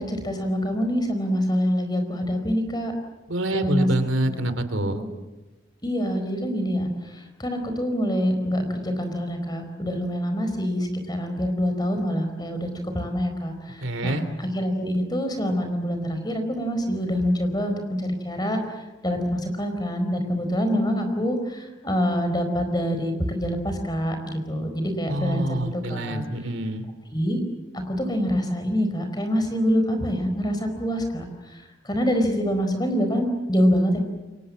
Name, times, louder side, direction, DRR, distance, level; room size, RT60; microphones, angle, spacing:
voice 1, 0.0-2.9 3.5-3.9 4.2-4.4 4.8-5.1 5.8-26.2 27.1-27.4 27.7-34.0, equal, 20° left, 6 dB, 4.5 m, -26 dB
voice 2, 3.3-5.0 13.8-14.2 25.1-26.9, right 1 dB, 85° right, 11 dB, 2.8 m, -26 dB
29.0 x 23.5 x 7.6 m, 1.1 s
head